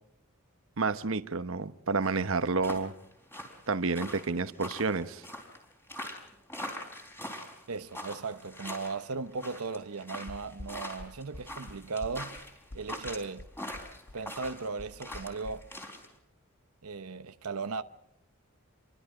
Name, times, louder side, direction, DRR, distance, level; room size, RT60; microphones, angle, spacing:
voice 1, 0.8-2.9 3.7-5.2, right 4 dB, 65° right, 1.0 m, -30 dB
sound 1, 2.0-16.1, left 1 dB, 10° left, 4.1 m, -43 dB
voice 2, 7.7-12.4 12.7-13.5 14.1-15.7 16.8-17.8, right 4 dB, 85° right, 0.9 m, -37 dB
sound 2, 10.3-15.5, left 1 dB, 70° left, 1.5 m, -46 dB
28.0 x 23.5 x 4.9 m
head